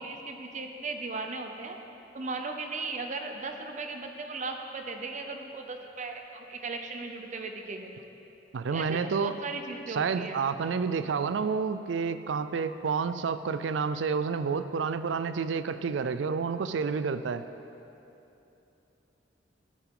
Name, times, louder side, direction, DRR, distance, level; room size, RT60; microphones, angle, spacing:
voice 1, 0.0-1.8 2.1-7.9 8.7-10.4, right 3 dB, 40° right, 5 dB, 0.6 m, -37 dB
voice 2, 8.5-9.4 9.9-17.4, right 5 dB, 90° right, 12 dB, 0.4 m, -29 dB
12.5 x 9.1 x 3.8 m, 3.0 s
head